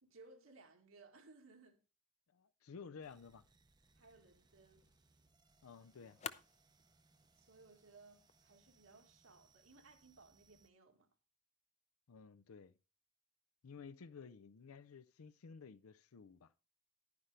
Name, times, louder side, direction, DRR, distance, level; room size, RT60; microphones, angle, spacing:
voice 1, 0.0-1.8 4.0-4.9 7.4-11.1, right 3 dB, 75° right, 1.9 m, -62 dB
voice 2, 2.3-3.4 5.6-6.2 12.1-12.8 13.6-16.5, left 5 dB, 85° left, 0.5 m, -54 dB
sound 1, 3.0-10.7, right 4 dB, 20° right, 0.6 m, -73 dB
sound 2, 3.8-9.8, left 7 dB, 30° left, 0.5 m, -56 dB
11.5 x 9.7 x 3.3 m
head